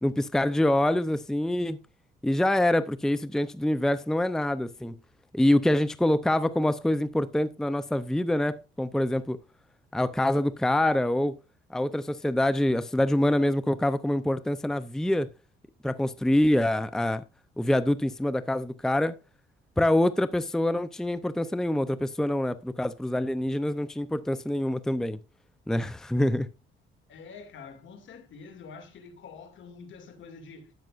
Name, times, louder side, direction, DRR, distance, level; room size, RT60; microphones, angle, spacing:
voice 1, 0.0-1.8 2.2-5.0 5.3-9.4 9.9-11.4 11.7-15.3 15.8-17.2 17.6-19.2 19.8-25.2 25.7-26.5, left 1 dB, ahead, 0.6 m, -25 dB
voice 2, 27.1-30.7, left 5 dB, 65° left, 2.3 m, -46 dB
12.5 x 9.0 x 2.5 m
cardioid pair, 85°, 21 cm